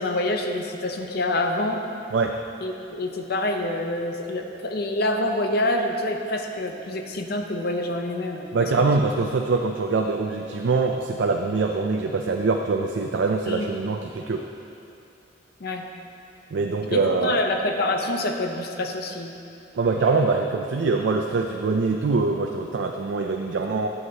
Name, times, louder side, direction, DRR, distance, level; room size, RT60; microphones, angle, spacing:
voice 1, 0.0-1.8 2.6-9.1 13.5-13.7 15.6-15.9 16.9-19.4, left 1 dB, 55° left, 4 dB, 0.7 m, -27 dB
voice 2, 8.5-14.4 16.5-17.4 19.8-23.9, right 4 dB, 70° right, 3 dB, 0.4 m, -23 dB
10.5 x 8.0 x 2.8 m, 2.6 s
head